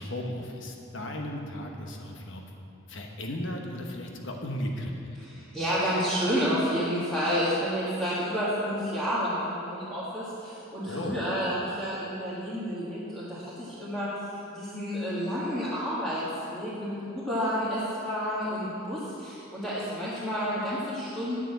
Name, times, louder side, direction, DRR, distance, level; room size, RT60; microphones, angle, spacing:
voice 1, 0.0-2.4 2.9-5.2 10.8-11.2, left 1 dB, 60° left, 1 dB, 1.1 m, -35 dB
voice 2, 5.2-14.1 14.5-21.4, equal, 5° left, -11 dB, 1.8 m, -30 dB
9.0 x 6.7 x 8.0 m, 2.9 s
head